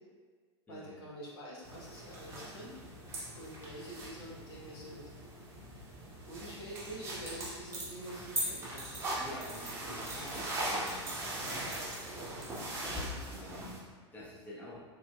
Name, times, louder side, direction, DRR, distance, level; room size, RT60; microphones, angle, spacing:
voice 1, 0.7-2.7 3.4-5.0 6.3-8.9, right 1 dB, 55° left, -6 dB, 1.0 m, -46 dB
sound 1, 1.6-13.8, right 1 dB, 20° right, 0.9 m, -40 dB
voice 2, 9.2-12.1 12.3-12.7 13.3-14.8, equal, 10° left, -7 dB, 0.8 m, -49 dB
4.0 x 2.7 x 2.2 m, 1.5 s
figure-of-eight pair, 90°, 15 cm